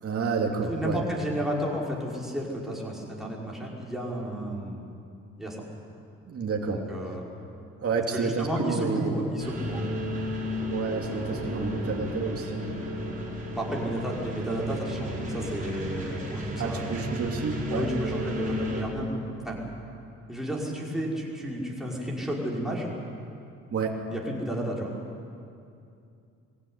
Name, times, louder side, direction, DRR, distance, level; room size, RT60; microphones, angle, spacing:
voice 1, 0.0-1.0 6.3-6.8 7.8-9.1 10.7-13.3 16.6-17.9 23.7-23.9, right 5 dB, 50° right, 0 dB, 2.7 m, -30 dB
voice 2, 0.7-4.9 5.4-5.6 6.7-7.3 8.1-10.0 13.5-17.0 17.7-19.6 20.3-22.9 24.1-24.9, equal, ahead, -4 dB, 5.3 m, -32 dB
sound 1, 9.4-18.8, left 1 dB, 25° right, 5.2 m, -33 dB
21.5 x 16.0 x 9.6 m, 2.5 s
cardioid pair, 90°, 30 cm